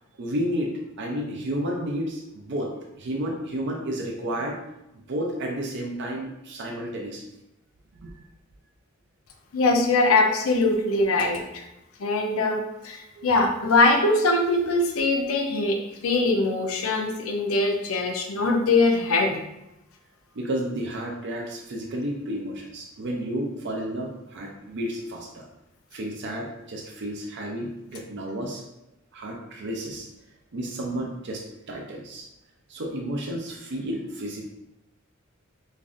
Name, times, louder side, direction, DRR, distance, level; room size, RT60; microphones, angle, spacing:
voice 1, 0.2-2.7 3.0-4.6 4.9-7.3 8.0-8.1 13.2-13.3 20.4-25.5 25.9-28.6 29.1-30.1 30.5-32.3 32.7-34.5, right 1 dB, 55° right, 0 dB, 0.5 m, -31 dB
voice 2, 9.5-11.6 12.0-15.8 16.0-19.4, left 2 dB, 80° left, 3 dB, 0.6 m, -22 dB
5.2 x 2.5 x 2.5 m, 0.89 s
head